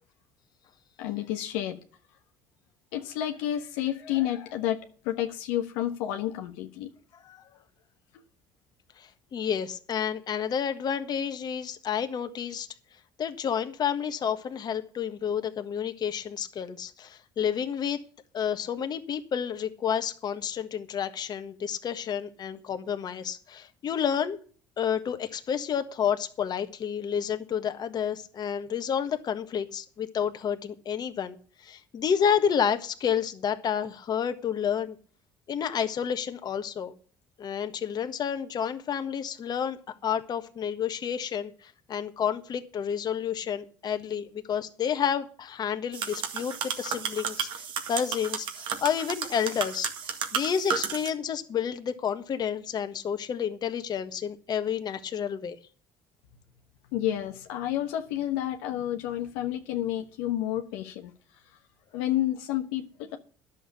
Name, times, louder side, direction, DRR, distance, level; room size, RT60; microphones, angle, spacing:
voice 1, 1.0-1.8 2.9-6.9 56.9-61.1 61.9-62.8, left 12 dB, 80° left, 1.2 m, -30 dB
voice 2, 9.0-12.7 13.2-18.0 18.3-24.4 24.8-35.0 35.5-36.9 37.4-39.8 40.0-55.6, left 8 dB, 50° left, 1.4 m, -30 dB
sound 1, 45.9-51.1, right 7 dB, 65° right, 1.9 m, -33 dB
11.0 x 7.2 x 8.2 m
hypercardioid pair, 65°, 9 cm